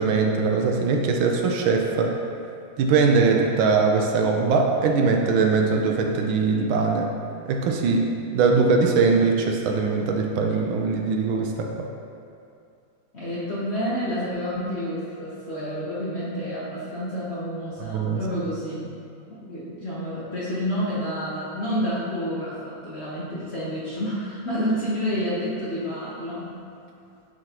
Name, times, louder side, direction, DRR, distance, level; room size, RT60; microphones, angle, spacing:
voice 1, 0.0-2.1 2.8-7.1 7.5-8.1 8.3-11.7 17.8-18.2, right 4 dB, 75° right, 2 dB, 1.4 m, -21 dB
voice 2, 13.1-18.9 19.3-26.6, equal, 45° left, -9 dB, 0.9 m, -29 dB
10.5 x 3.7 x 3.0 m, 2.5 s
omnidirectional pair, 2.3 m